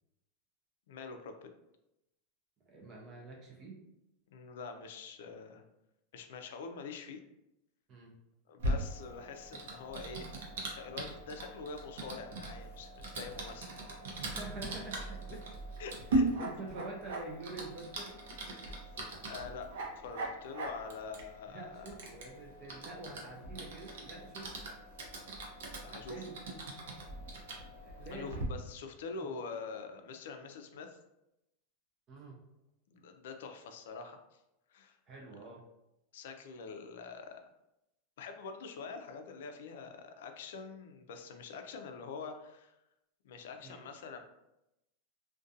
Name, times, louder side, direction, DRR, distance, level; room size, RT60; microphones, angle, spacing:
voice 1, 0.9-1.5 4.3-5.6 6.1-7.2 8.5-10.3 10.6-13.7 15.8-16.4 18.7-19.7 20.0-21.9 25.8-26.3 28.1-31.0 32.9-34.2 34.7-35.0 36.1-37.5 38.2-42.8 43.2-44.2, left 5 dB, 80° left, 6 dB, 0.3 m, -45 dB
voice 2, 2.7-3.8 7.9-8.1 14.2-15.4 16.4-18.1 21.5-24.5 26.0-26.6 27.8-28.4 32.1-32.4 35.1-35.6 43.6-43.9, right 2 dB, 30° right, -1 dB, 0.5 m, -46 dB
Typing, 8.6-28.4, right 2 dB, 85° right, 0.6 m, -40 dB
2.4 x 2.2 x 2.6 m, 0.88 s
supercardioid pair, 155°, 0 cm